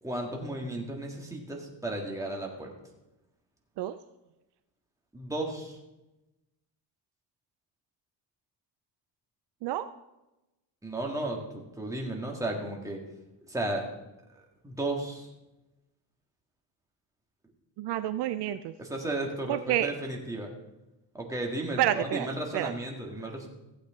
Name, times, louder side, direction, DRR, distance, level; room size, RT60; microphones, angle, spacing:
voice 1, 0.0-2.7 5.1-5.8 10.8-13.0 13.5-13.9 14.6-15.3 18.8-20.5 21.1-23.5, right 1 dB, 5° right, 0 dB, 1.7 m, -34 dB
voice 2, 17.8-18.7 19.5-19.9 21.8-22.3 22.5-22.7, right 13 dB, 65° right, 12 dB, 0.6 m, -29 dB
15.5 x 8.1 x 3.7 m, 0.98 s
cardioid pair, 150°, 44 cm